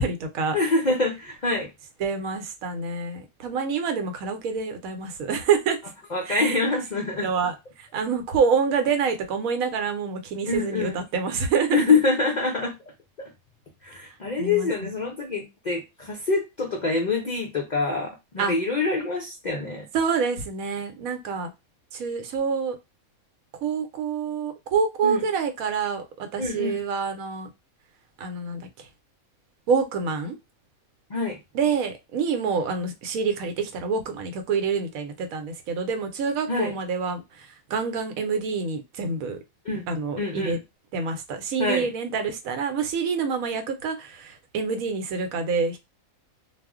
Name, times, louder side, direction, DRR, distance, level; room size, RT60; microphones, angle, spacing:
voice 1, 0.0-0.6 2.0-5.8 6.3-6.6 7.2-11.8 14.4-14.9 18.4-18.5 19.9-21.5 21.9-22.8 23.6-27.5 28.2-28.9 29.7-30.4 31.5-39.4 39.9-40.6 40.9-45.8, right 5 dB, 75° right, 1.0 m, -27 dB
voice 2, 0.5-1.7 6.1-7.3 10.5-11.0 11.7-12.7 13.2-13.3 13.8-19.9 25.0-25.2 26.4-26.8 31.1-31.4 36.5-36.7 39.6-39.9 40.2-40.6 41.6-41.9, left 3 dB, 60° left, 0.4 m, -25 dB
2.4 x 2.0 x 3.5 m
omnidirectional pair, 1.5 m